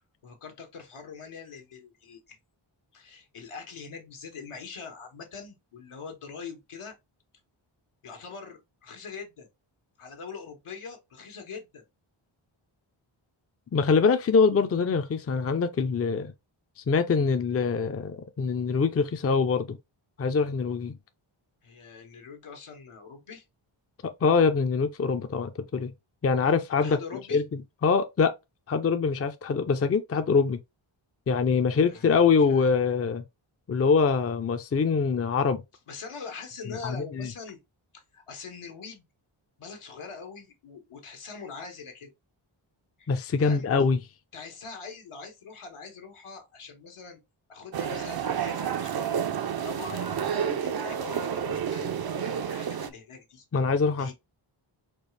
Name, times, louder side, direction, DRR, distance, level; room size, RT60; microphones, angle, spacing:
voice 1, 0.2-2.4 2.9-6.9 8.0-9.5 10.0-11.8 21.6-23.4 26.8-27.4 31.9-32.7 35.9-37.6 37.9-39.0 39.6-42.1 43.0-43.1 43.4-43.7 44.3-47.2 47.5-53.4 54.0-54.1, left 5 dB, 85° left, 1.4 m, -43 dB
voice 2, 13.7-16.3 16.8-19.8 20.2-21.0 24.2-25.9 26.2-27.0 27.3-28.3 28.7-30.6 31.3-33.2 33.7-35.6 36.8-37.3 43.1-44.0 53.5-54.1, left 5 dB, 30° left, 0.5 m, -24 dB
sound 1, 47.7-52.9, right 8 dB, 50° right, 0.5 m, -30 dB
4.6 x 2.4 x 3.2 m
wide cardioid pair, 95°, 49 cm